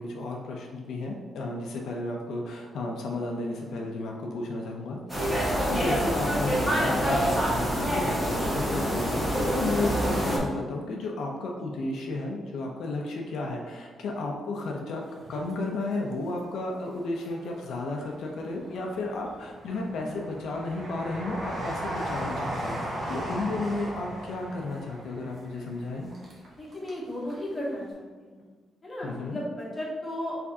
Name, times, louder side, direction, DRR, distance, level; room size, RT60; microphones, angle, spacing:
voice 1, 0.0-5.0 5.5-15.0 15.3-26.1 29.0-29.4, left 2 dB, 80° left, 0 dB, 0.5 m, -33 dB
sound 1, 5.1-10.4, equal, 5° right, 1.2 m, -26 dB
Train, 15.1-16.3 16.8-17.7 18.3-27.0 27.3-27.4, right 1 dB, 40° right, 1.0 m, -37 dB
voice 2, 26.6-28.5 28.8-30.5, left 1 dB, 20° left, -5 dB, 1.1 m, -35 dB
4.7 x 3.4 x 2.7 m, 1.4 s
wide cardioid pair, 160°, 0 cm